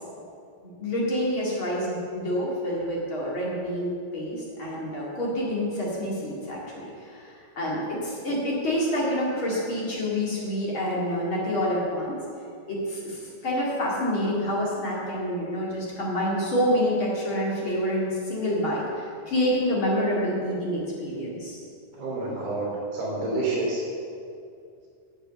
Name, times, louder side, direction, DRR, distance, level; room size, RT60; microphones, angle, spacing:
voice 1, 0.6-12.2 12.7-21.6, equal, 40° left, -5 dB, 2.2 m, -27 dB
voice 2, 22.0-23.8, right 2 dB, 60° right, -4 dB, 4.9 m, -28 dB
10.0 x 8.6 x 7.0 m, 2.4 s
omnidirectional pair, 5.2 m